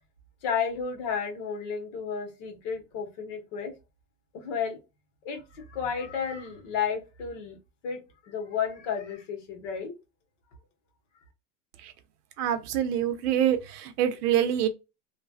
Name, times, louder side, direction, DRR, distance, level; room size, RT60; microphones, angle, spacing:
voice 1, 0.4-3.7 4.3-4.8 5.2-7.6 7.8-9.9, left 6 dB, 50° left, 1.2 m, -32 dB
voice 2, 12.4-14.7, right 10 dB, 75° right, 0.8 m, -25 dB
3.2 x 2.3 x 2.4 m
supercardioid pair, 140°, 46 cm